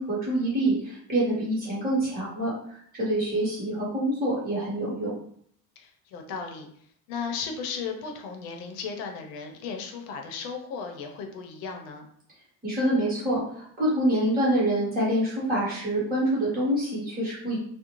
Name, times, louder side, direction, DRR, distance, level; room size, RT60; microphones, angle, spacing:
voice 1, 0.0-2.5 2.9-5.1 12.6-17.6, right 1 dB, 25° right, -8 dB, 1.1 m, -26 dB
voice 2, 5.8-6.7 7.1-12.1, left 5 dB, 80° left, 3 dB, 0.7 m, -35 dB
2.5 x 2.0 x 3.0 m, 0.64 s
cardioid pair, 155°, 36 cm